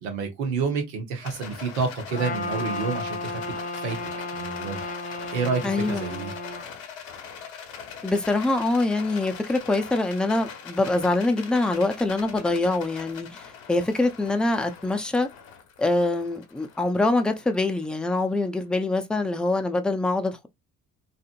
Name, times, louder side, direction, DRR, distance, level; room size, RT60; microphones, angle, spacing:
voice 1, 0.0-3.4 3.7-4.0 4.3-4.8 5.3-6.3, right 5 dB, 80° right, 1.1 m, -29 dB
Rattle, 1.2-18.5, left 6 dB, 80° left, 0.9 m, -42 dB
Trumpet, 2.1-6.7, left 2 dB, 20° left, 0.9 m, -33 dB
voice 2, 5.6-6.1 8.0-15.3 15.8-20.5, left 2 dB, ahead, 0.5 m, -24 dB
2.8 x 2.5 x 2.5 m
hypercardioid pair, 50°, 42 cm